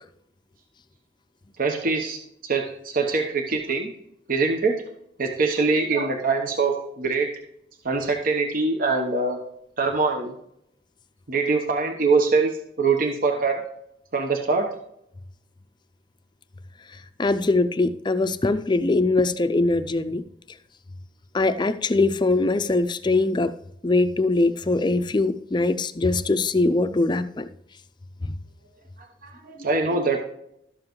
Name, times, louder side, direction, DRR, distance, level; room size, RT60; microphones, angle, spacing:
voice 1, 1.6-3.9 4.3-4.8 5.2-7.3 7.8-9.4 9.8-10.3 11.3-13.6 14.1-14.7 29.2-30.2, right 4 dB, 50° right, 3 dB, 1.0 m, -23 dB
voice 2, 17.2-20.2 21.3-23.5 23.8-27.5 28.2-28.3, left 2 dB, 25° left, 11 dB, 0.5 m, -22 dB
12.5 x 7.4 x 3.1 m, 0.76 s
head